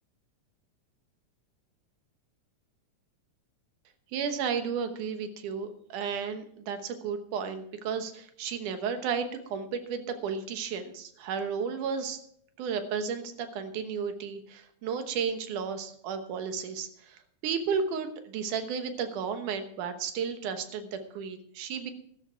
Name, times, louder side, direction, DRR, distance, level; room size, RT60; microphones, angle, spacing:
voice 1, 4.1-12.2 12.6-21.9, right 6 dB, 90° right, 8 dB, 2.7 m, -33 dB
13.0 x 12.5 x 4.5 m, 0.66 s
omnidirectional pair, 3.5 m